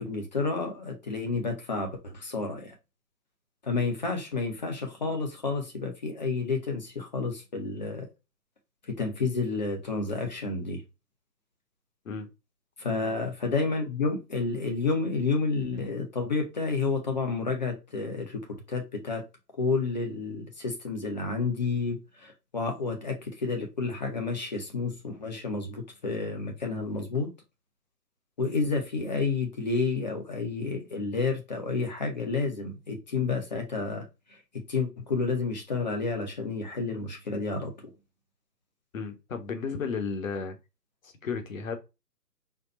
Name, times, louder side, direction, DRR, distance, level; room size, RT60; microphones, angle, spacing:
voice 1, 0.0-2.7 3.6-8.1 9.0-10.8 12.8-18.4 18.7-19.2 19.6-27.3 28.4-34.0 34.7-37.7, left 4 dB, 25° left, 0.7 m, -30 dB
voice 2, 38.9-40.6 41.0-41.8, left 5 dB, 50° left, 1.1 m, -33 dB
4.3 x 2.3 x 3.9 m
figure-of-eight pair, 150°, 50 cm